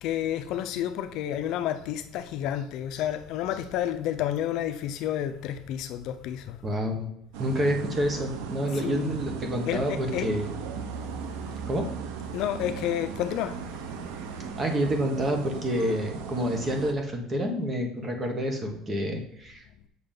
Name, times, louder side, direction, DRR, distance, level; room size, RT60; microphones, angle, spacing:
voice 1, 0.0-6.6 8.8-9.2 9.6-10.3 12.3-13.6, left 11 dB, 60° left, 0.6 m, -30 dB
voice 2, 6.6-7.1 7.4-10.5 11.6-11.9 14.6-19.6, equal, 20° right, 1.3 m, -28 dB
sound 1, 7.3-16.9, right 7 dB, 85° right, 0.8 m, -37 dB
7.2 x 5.9 x 3.8 m
cardioid pair, 150°, 0 cm